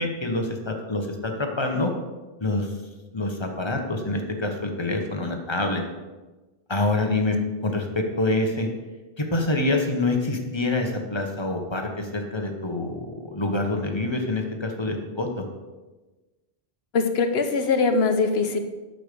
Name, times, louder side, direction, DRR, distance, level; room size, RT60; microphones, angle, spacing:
voice 1, 0.0-1.9 2.4-2.7 3.1-5.8 6.7-8.7 9.2-15.4, left 2 dB, 25° left, 3 dB, 1.4 m, -26 dB
voice 2, 16.9-18.6, left 4 dB, 80° left, 7 dB, 1.2 m, -22 dB
8.7 x 6.8 x 6.9 m, 1.2 s
omnidirectional pair, 1.0 m